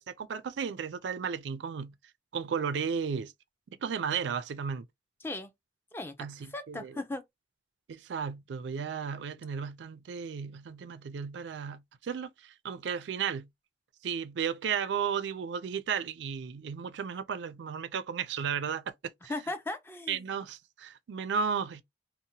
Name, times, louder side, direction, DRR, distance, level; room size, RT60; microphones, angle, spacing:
voice 1, 0.0-1.9 2.3-3.3 3.8-4.8 6.2-6.9 7.9-13.5 14.0-18.8 20.1-21.8, right 6 dB, 80° right, 0.4 m, -34 dB
voice 2, 5.2-5.5 5.9-7.2 19.3-20.3, left 2 dB, 15° left, 0.4 m, -37 dB
2.7 x 2.1 x 2.7 m
head